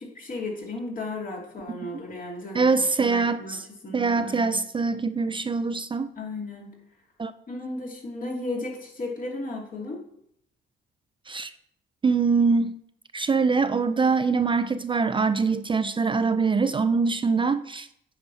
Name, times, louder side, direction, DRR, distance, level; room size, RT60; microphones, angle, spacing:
voice 1, 0.1-2.7 3.0-4.6 6.2-6.8 7.5-10.0, left 2 dB, 45° left, 2.6 m, -35 dB
voice 2, 2.5-3.6 3.9-6.1 7.2-7.3 11.3-11.5 12.0-12.8 13.1-17.9, right 4 dB, 25° right, 0.4 m, -23 dB
8.9 x 4.7 x 5.5 m
cardioid pair, 90°, 20 cm